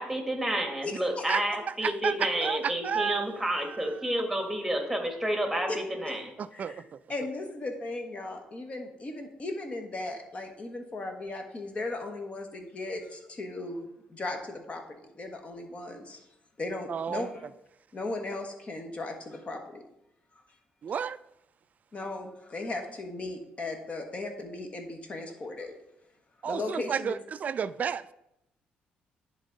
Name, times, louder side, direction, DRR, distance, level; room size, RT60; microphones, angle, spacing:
voice 1, 0.0-6.2, right 1 dB, 5° right, 1.5 m, -30 dB
voice 2, 0.8-1.3 5.7-5.8 6.0-6.1 6.5-6.8 7.1-14.8 15.2-16.2 16.6-17.4 17.9-19.8 20.3-20.4 21.9-25.7 26.4-27.1, left 2 dB, 35° left, 1.3 m, -37 dB
voice 3, 1.8-3.8 6.4-7.0 16.9-17.3 20.8-21.2 26.4-28.1, right 7 dB, 45° right, 0.3 m, -32 dB
10.5 x 3.6 x 4.0 m
cardioid pair, 90°, 4 cm